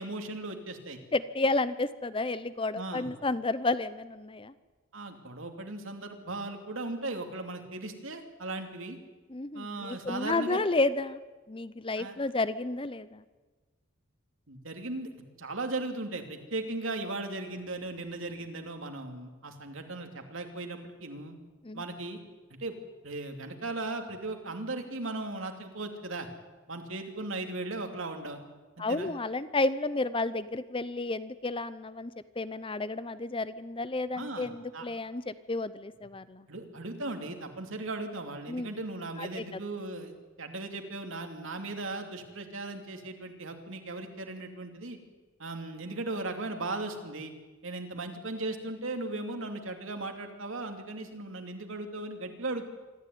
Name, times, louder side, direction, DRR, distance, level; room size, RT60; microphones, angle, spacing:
voice 1, 0.0-1.0 2.7-3.1 4.9-9.0 9.5-10.6 12.0-12.1 14.5-21.4 21.7-22.2 22.6-22.7 23.0-26.3 26.7-28.4 28.8-29.1 34.1-34.5 34.7-34.9 36.5-45.0 45.4-47.3 47.6-52.7, right 2 dB, 70° right, 5 dB, 2.9 m, -37 dB
voice 2, 1.1-4.5 9.3-11.2 11.5-13.2 21.6-21.8 28.8-32.1 32.4-36.5 38.5-38.7 39.2-39.6, left 2 dB, 25° left, 14 dB, 0.7 m, -31 dB
25.5 x 14.0 x 9.5 m, 1.3 s
head